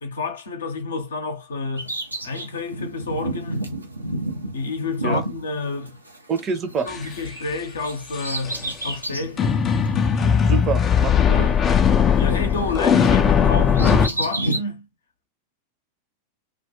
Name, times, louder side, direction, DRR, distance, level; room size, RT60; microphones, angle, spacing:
voice 1, 0.0-1.9 2.2-3.7 4.5-6.0 6.8-9.6 11.3-11.5 12.2-14.9, left 3 dB, 70° left, 0.7 m, -30 dB
Bird vocalization bird call bird song, 1.8-6.4 6.7-9.4 9.8-9.9 10.8-12.3 12.6-14.6, right 1 dB, 85° right, 0.5 m, -30 dB
voice 2, 6.3-6.9 10.4-11.5, right 5 dB, 25° right, 0.6 m, -26 dB
sound 1, 6.9-7.0 8.1-8.5 9.4-14.1, left 7 dB, 25° left, 0.4 m, -18 dB
2.3 x 2.3 x 2.7 m
figure-of-eight pair, 90°, 0 cm